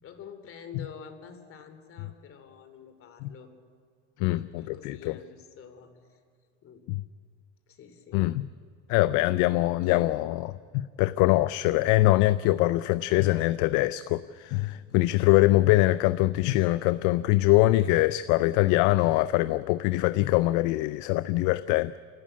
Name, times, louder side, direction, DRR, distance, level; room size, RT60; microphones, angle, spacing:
voice 1, 0.0-3.5 4.6-6.2 6.6-6.8 7.7-8.3 9.8-10.1, left 7 dB, 40° left, 8 dB, 2.8 m, -47 dB
voice 2, 4.2-5.1 6.9-7.0 8.1-8.5 8.9-10.4 10.7-22.0, left 17 dB, 60° left, 15 dB, 0.6 m, -23 dB
30.0 x 13.0 x 8.7 m, 2.1 s
supercardioid pair, 115°, 35 cm